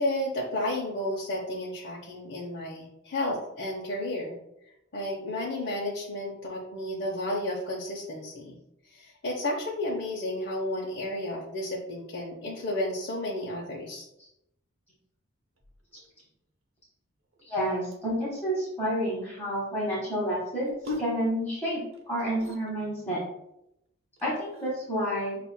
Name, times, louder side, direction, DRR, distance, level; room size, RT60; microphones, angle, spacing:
voice 1, 0.0-4.3 4.9-8.5 8.9-14.1, left 1 dB, 55° left, -4 dB, 0.7 m, -32 dB
sound 1, 15.6-16.3 17.2-18.3 20.6-23.0 24.2-24.7, left 2 dB, 85° right, 0.7 m, -40 dB
voice 2, 17.4-20.7 21.0-21.8 22.1-23.2 24.2-25.4, equal, 10° left, -8 dB, 1.1 m, -29 dB
7.0 x 2.4 x 2.2 m, 0.81 s
head